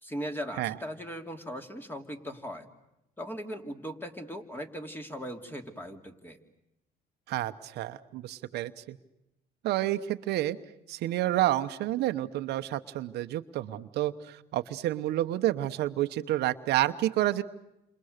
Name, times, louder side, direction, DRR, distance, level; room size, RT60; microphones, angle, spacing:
voice 1, 0.0-2.7 3.2-6.4, equal, 10° left, 5 dB, 2.8 m, -39 dB
voice 2, 7.3-9.0 9.6-10.6 10.9-17.4, right 14 dB, 80° right, 9 dB, 1.1 m, -29 dB
29.0 x 27.0 x 6.7 m, 0.89 s
cardioid pair, 110°, 17 cm